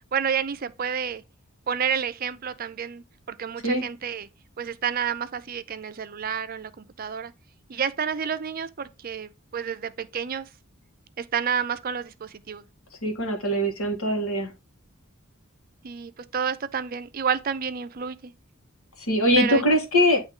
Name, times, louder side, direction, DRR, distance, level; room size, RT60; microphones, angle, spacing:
voice 1, 0.1-1.2 1.7-4.3 4.6-7.3 7.7-10.5 11.2-12.6 15.8-18.3 19.4-19.6, right 7 dB, 45° right, 0.4 m, -30 dB
voice 2, 13.0-14.5 19.0-20.2, equal, 80° left, 1.7 m, -22 dB
9.3 x 3.2 x 3.7 m
head